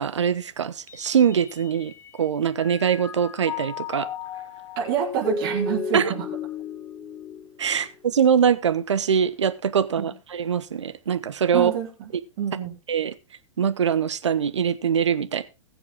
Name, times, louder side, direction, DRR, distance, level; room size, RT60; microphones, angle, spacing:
voice 1, 0.0-1.9 2.2-4.1 5.9-6.1 7.6-11.7 12.9-13.1 13.6-15.4, right 7 dB, 65° right, 1.2 m, -23 dB
Mallet percussion, 0.9-2.2 2.6-8.0, left 3 dB, 15° left, 1.1 m, -34 dB
voice 2, 4.8-6.2 10.0-10.1 11.5-11.9 12.4-12.7, right 8 dB, 45° right, 4.1 m, -26 dB
21.0 x 7.0 x 3.6 m
figure-of-eight pair, 105°, 16 cm